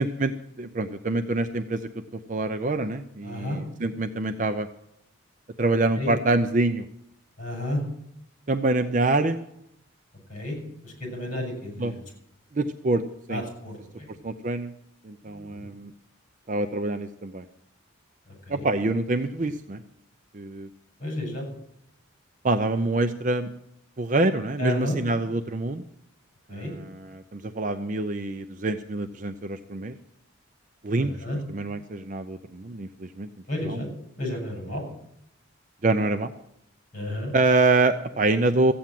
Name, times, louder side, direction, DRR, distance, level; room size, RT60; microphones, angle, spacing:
voice 1, 0.0-1.9 2.3-4.7 5.6-6.9 8.5-9.4 11.8-11.9 12.5-13.0 13.3-13.4 14.2-14.7 15.0-15.9 16.5-17.4 18.5-19.8 20.3-20.7 22.4-23.5 24.0-25.8 26.5-30.0 30.8-31.1 31.5-33.3 33.6-33.8 35.8-36.3 37.3-38.7, right 2 dB, 40° right, 8 dB, 0.5 m, -25 dB
voice 2, 3.2-3.6 6.0-6.1 7.4-7.8 10.3-10.6 10.8-12.0 13.3-13.7 15.3-15.7 18.5-18.6 21.0-21.5 24.6-25.0 26.5-26.7 31.0-31.4 33.5-33.9 34.2-34.8 36.9-37.3, left 1 dB, 40° left, -1 dB, 6.6 m, -31 dB
14.5 x 8.6 x 7.6 m, 0.78 s
head